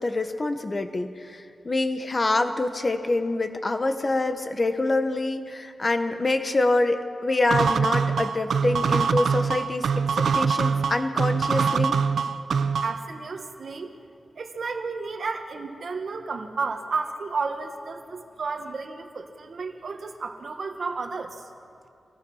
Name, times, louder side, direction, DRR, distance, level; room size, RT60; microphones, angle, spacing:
voice 1, 0.0-12.0, left 2 dB, 30° left, 7 dB, 1.3 m, -26 dB
sound 1, 7.5-13.1, right 6 dB, 85° right, 0.6 m, -24 dB
voice 2, 12.8-13.9 14.4-21.5, right 4 dB, 55° right, 4 dB, 1.6 m, -32 dB
26.5 x 18.5 x 5.7 m, 2.4 s
wide cardioid pair, 140°, 0 cm